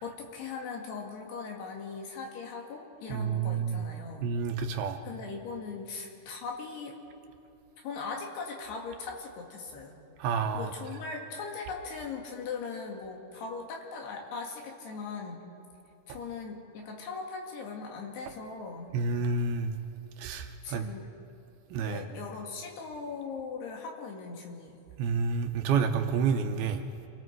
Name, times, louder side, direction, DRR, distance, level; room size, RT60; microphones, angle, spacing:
voice 1, 0.0-4.3 5.0-6.9 7.8-10.0 10.5-15.4 16.1-19.0 20.6-21.1 21.9-24.8, left 4 dB, 80° left, 1 dB, 4.2 m, -39 dB
voice 2, 3.1-3.8 4.2-5.0 10.2-10.7 18.9-19.7 20.2-20.8 21.7-22.0 25.0-26.8, right 5 dB, 75° right, 6 dB, 2.6 m, -29 dB
27.5 x 21.5 x 4.6 m, 2.6 s
omnidirectional pair, 4.7 m